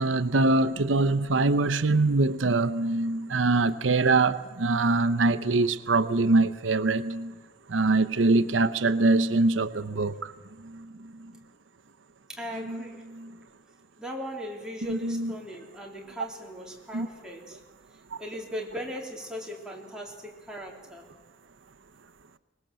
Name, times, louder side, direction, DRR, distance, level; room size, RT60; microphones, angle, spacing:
voice 1, 0.0-7.3 7.7-10.3 10.6-10.9 12.7-12.8 13.1-13.3 14.9-15.3 16.9-17.1 18.1-18.2, right 3 dB, 85° right, 0.8 m, -24 dB
voice 2, 12.3-13.1 14.0-17.6 17.9-21.1, equal, 5° right, 3.5 m, -38 dB
24.0 x 20.5 x 7.6 m
head